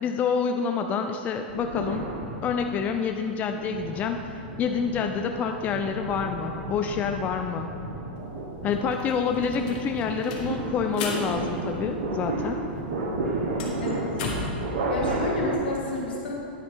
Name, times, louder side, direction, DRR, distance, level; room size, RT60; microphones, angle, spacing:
voice 1, 0.0-2.1 2.4-4.2 4.6-7.7 8.6-12.6, left 6 dB, 30° left, 5 dB, 0.4 m, -27 dB
sound 1, 1.5-2.9 3.5-15.5, right 2 dB, 70° right, 1.3 m, -33 dB
sound 2, 8.2-8.3 8.5-12.5 12.7-14.7, left 3 dB, 60° left, 1.4 m, -36 dB
voice 2, 14.9-16.3, left 2 dB, 80° left, -3 dB, 2.0 m, -29 dB
9.7 x 4.6 x 5.4 m, 2.8 s
hypercardioid pair, 120°, 6 cm